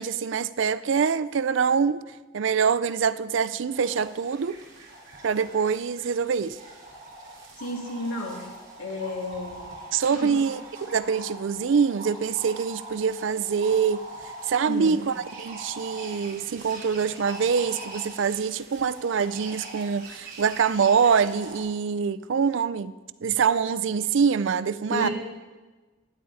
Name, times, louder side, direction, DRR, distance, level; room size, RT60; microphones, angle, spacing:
voice 1, 0.0-2.0 2.3-4.6 5.2-6.6 9.9-10.6 10.9-14.0 14.5-22.9 23.2-25.1, right 6 dB, 60° right, 0.4 m, -24 dB
sound 1, 3.7-21.6, right 2 dB, 45° right, 3.7 m, -43 dB
voice 2, 7.6-8.5 8.8-9.7 10.1-10.3 14.6-15.0 24.9-25.1, left 1 dB, 90° left, 2.5 m, -32 dB
15.5 x 10.0 x 4.1 m
head